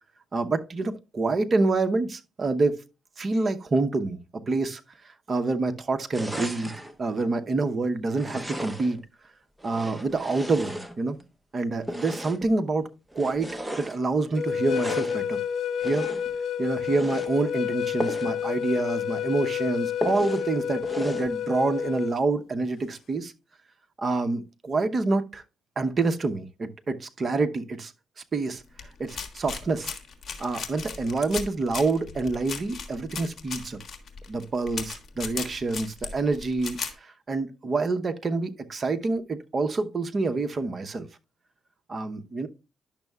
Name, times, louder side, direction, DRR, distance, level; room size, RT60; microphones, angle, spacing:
voice 1, 0.3-2.8 3.2-4.2 4.5-4.8 5.3-6.7 7.0-9.0 9.6-11.2 11.5-12.9 13.1-15.4 15.8-16.1 16.6-23.3 24.0-25.4 25.8-27.9 28.3-28.6 29.0-29.9 30.4-33.8 34.3-41.1 41.9-42.5, right 3 dB, 40° right, 0.8 m, -27 dB
sound 1, 6.1-6.9 8.1-9.0 9.6-11.3 11.8-12.5 13.1-14.0 14.6-15.2 15.8-16.4 16.8-17.3 18.0-18.4 18.7-18.8 19.2-19.3 20.0-20.5 20.8-21.3, equal, 5° right, 0.8 m, -35 dB
sound 2, 14.4-22.1, left 9 dB, 65° left, 0.5 m, -29 dB
sound 3, 28.8-36.9, left 5 dB, 45° left, 1.4 m, -36 dB
10.5 x 6.3 x 2.3 m
cardioid pair, 90°, 0 cm